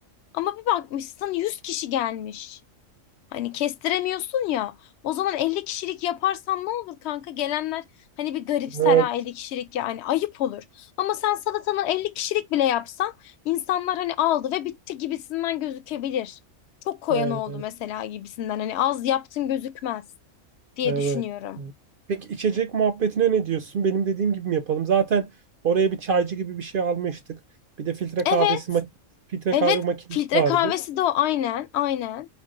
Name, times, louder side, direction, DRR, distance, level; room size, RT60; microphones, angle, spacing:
voice 1, 0.3-2.6 3.3-4.7 5.0-7.8 8.2-16.4 16.9-20.0 20.8-21.6 28.2-28.6 29.5-29.8 30.1-32.3, left 12 dB, 65° left, 0.7 m, -27 dB
voice 2, 8.8-9.1 17.1-17.4 20.8-21.2 21.6-21.7 22.1-25.3 25.6-27.4 27.8-28.8 29.3-29.9 30.3-30.7, right 6 dB, 65° right, 0.5 m, -24 dB
5.3 x 2.1 x 3.7 m
omnidirectional pair, 1.4 m